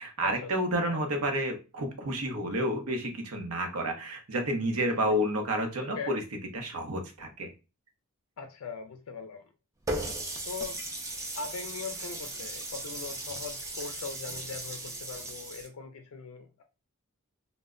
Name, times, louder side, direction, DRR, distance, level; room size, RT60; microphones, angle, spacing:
voice 1, 0.0-6.2 6.5-7.5, equal, 80° right, 0.7 m, -30 dB
voice 2, 8.4-9.4 10.5-10.8 11.4-16.6, left 5 dB, 70° left, 0.4 m, -40 dB
Water tap faucet, 9.9-15.7, right 1 dB, 15° right, 0.4 m, -37 dB
2.1 x 2.1 x 3.5 m
head